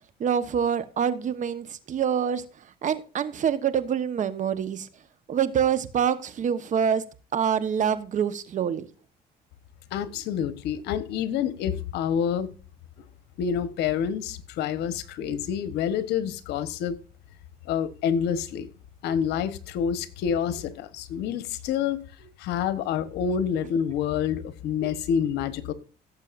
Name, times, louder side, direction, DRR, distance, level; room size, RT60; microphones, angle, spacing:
voice 1, 0.2-2.4 2.8-4.9 5.3-7.0 7.3-8.9, right 8 dB, 45° right, 1.1 m, -26 dB
voice 2, 9.9-12.5 13.4-17.0 17.6-18.7 19.0-22.0 22.4-25.7, left 8 dB, 85° left, 1.1 m, -27 dB
17.0 x 7.4 x 2.5 m
cardioid pair, 110°, 17 cm